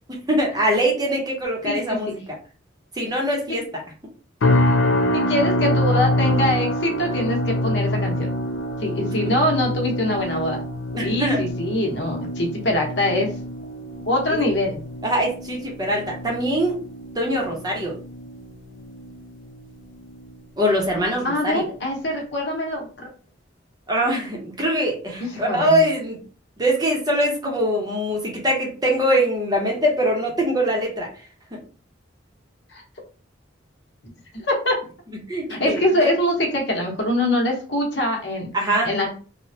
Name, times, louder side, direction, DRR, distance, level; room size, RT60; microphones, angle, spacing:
voice 1, 0.1-2.2 2.9-3.6 10.9-11.4 14.3-14.4 15.0-16.8 17.1-18.0 20.6-21.7 23.9-26.2 26.6-31.1 31.5-31.6 35.3-36.1 38.5-38.9, equal, 20° right, 0 dB, 0.7 m, -23 dB
voice 2, 1.6-2.0 3.5-3.6 5.1-8.3 8.8-10.6 11.0-13.3 14.0-14.8 21.2-23.1 25.2-25.8 32.7-32.8 34.3-34.8 35.5-38.5 38.8-39.1, left 1 dB, 65° left, 1 dB, 0.9 m, -23 dB
sound 1, 4.4-19.6 20.0-20.4 20.8-21.0, left 1 dB, 85° left, 0.5 m, -25 dB
3.2 x 2.1 x 2.7 m, 0.38 s
head